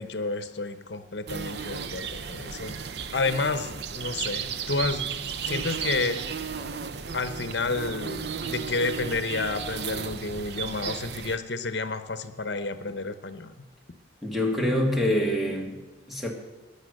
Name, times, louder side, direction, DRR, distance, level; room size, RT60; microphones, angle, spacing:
voice 1, 0.0-2.8 3.1-5.1 5.5-6.2 7.1-13.5, left 3 dB, 70° left, 11 dB, 1.1 m, -30 dB
sound 1, 1.3-11.4, right 6 dB, 65° right, 0.7 m, -34 dB
voice 2, 14.2-16.3, left 1 dB, ahead, 0 dB, 2.3 m, -26 dB
15.0 x 10.5 x 6.6 m, 1.2 s
head